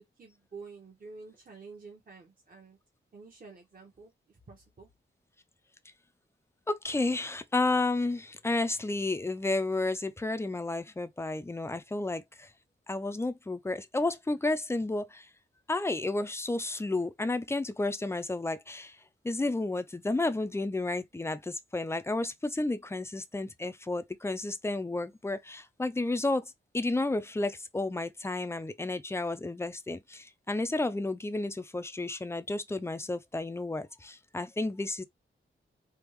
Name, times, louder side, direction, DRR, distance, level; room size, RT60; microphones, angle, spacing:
voice 1, 0.2-2.8 3.1-4.9, right 4 dB, 45° right, 1.0 m, -49 dB
voice 2, 6.7-12.5 12.9-15.3 15.7-19.0 19.2-35.0, left 2 dB, 10° left, 0.4 m, -32 dB
3.5 x 2.4 x 3.1 m
wide cardioid pair, 95°, 21 cm